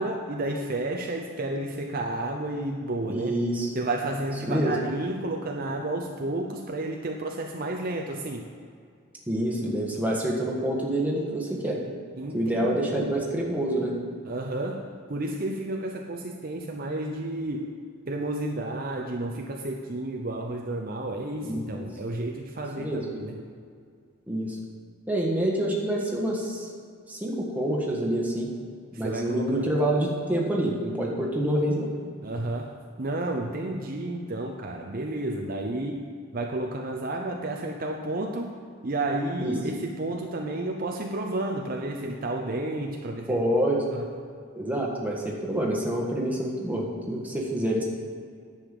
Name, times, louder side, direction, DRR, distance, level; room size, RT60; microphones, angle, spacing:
voice 1, 0.0-3.4 3.7-8.5 12.2-12.8 14.3-17.7 18.1-23.4 28.9-29.7 32.2-36.0 36.3-38.5 38.8-43.4 43.9-44.0, right 2 dB, 45° right, 2 dB, 0.7 m, -31 dB
voice 2, 3.1-3.7 4.5-4.8 9.3-11.8 12.3-13.9 21.4-21.9 22.8-23.0 24.3-24.6 25.1-26.7 27.1-28.5 28.9-31.9 39.4-39.5 43.3-43.8 44.5-47.8, right 1 dB, 10° right, -3 dB, 1.5 m, -27 dB
10.0 x 5.6 x 7.6 m, 2.2 s
head